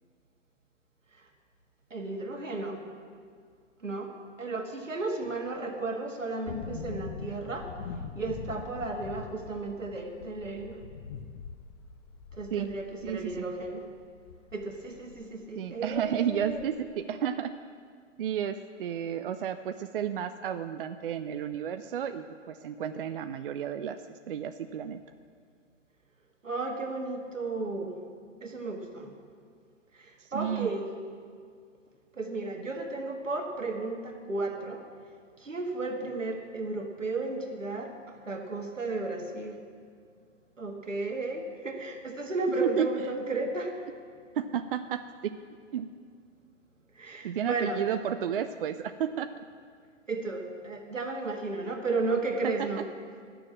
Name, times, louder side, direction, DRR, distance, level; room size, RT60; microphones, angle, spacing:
voice 1, 1.9-2.8 3.8-4.1 4.4-7.7 8.2-10.8 12.3-13.9 14.5-16.7 26.4-27.9 28.4-29.1 29.9-30.9 32.1-34.8 35.4-39.6 40.6-43.8 47.0-47.8 50.1-52.9, right 3 dB, 80° right, 2 dB, 1.8 m, -34 dB
sound 1, 6.5-15.3 15.6-15.7 15.9-17.0 17.2-17.3, left 5 dB, 20° left, 0.5 m, -43 dB
voice 2, 13.0-13.5 15.6-17.5 18.2-24.0 24.3-25.0 30.2-30.7 42.6-42.9 44.4-45.3 45.7-45.9 47.2-49.3, right 9 dB, 45° right, 9 dB, 0.5 m, -32 dB
12.0 x 6.9 x 8.5 m, 2.1 s
figure-of-eight pair, 115°, 37 cm